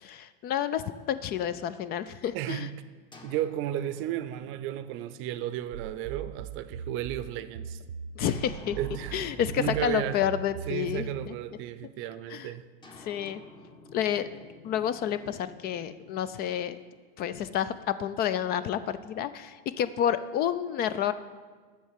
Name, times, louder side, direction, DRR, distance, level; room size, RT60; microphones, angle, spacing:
voice 1, 0.0-2.7 8.2-8.8 9.1-11.3 12.3-12.5 13.0-13.4 13.9-14.3 14.6-16.8 17.2-21.1, left 9 dB, 35° left, 0.4 m, -30 dB
voice 2, 2.3-2.8 3.2-7.8 8.8-9.2 9.6-10.3 10.7-12.7, right 12 dB, 45° right, 0.6 m, -33 dB
sound 1, 3.1-6.9 8.2-11.8 12.8-17.0, left 2 dB, 15° left, 1.1 m, -51 dB
sound 2, 5.7-11.2, right 7 dB, 85° right, 0.6 m, -40 dB
8.2 x 6.6 x 7.4 m
supercardioid pair, 125°, 29 cm